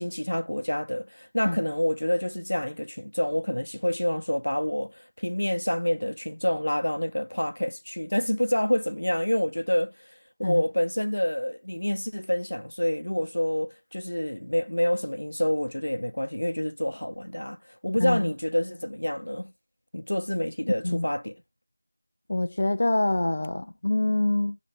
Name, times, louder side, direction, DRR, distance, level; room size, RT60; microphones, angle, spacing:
voice 1, 0.0-10.1 10.4-19.5 19.9-21.3, equal, 70° left, 0.7 m, -27 dB
voice 2, 18.0-18.3 20.8-21.0 22.3-24.6, left 2 dB, 40° left, 0.3 m, -25 dB
6.3 x 3.8 x 4.6 m
figure-of-eight pair, 170°, 0 cm